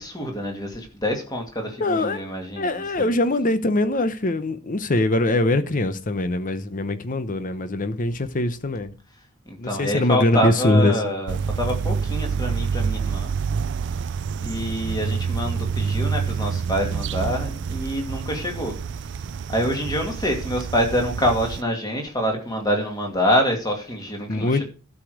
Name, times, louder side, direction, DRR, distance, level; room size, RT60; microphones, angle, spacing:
voice 1, 0.0-3.1 9.5-13.3 14.4-18.8 19.5-24.6, equal, 20° left, 2.3 m, -26 dB
voice 2, 1.8-2.2 2.6-8.9 9.6-11.2 24.3-24.6, left 2 dB, 40° left, 0.8 m, -22 dB
sound 1, 11.3-21.6, right 6 dB, 55° right, 0.4 m, -27 dB
12.0 x 5.0 x 6.3 m
head